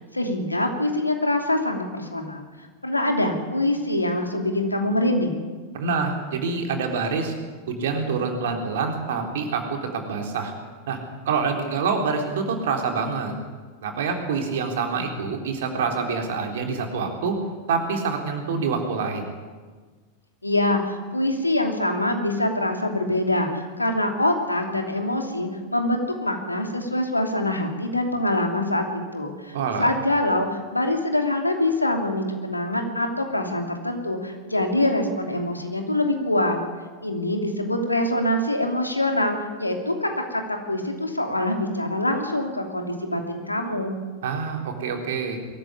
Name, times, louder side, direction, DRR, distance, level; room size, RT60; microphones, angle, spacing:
voice 1, 0.1-2.4 2.8-5.4 20.4-36.6 37.0-44.0, left 1 dB, 85° left, 4 dB, 2.9 m, -24 dB
voice 2, 5.7-7.3 7.7-10.5 10.9-11.0 11.3-13.4 13.8-17.4 17.7-19.3 29.5-29.9 44.2-45.4, right 5 dB, 55° right, 3 dB, 3.8 m, -26 dB
22.5 x 14.5 x 9.8 m, 1.4 s
figure-of-eight pair, 90°, 0 cm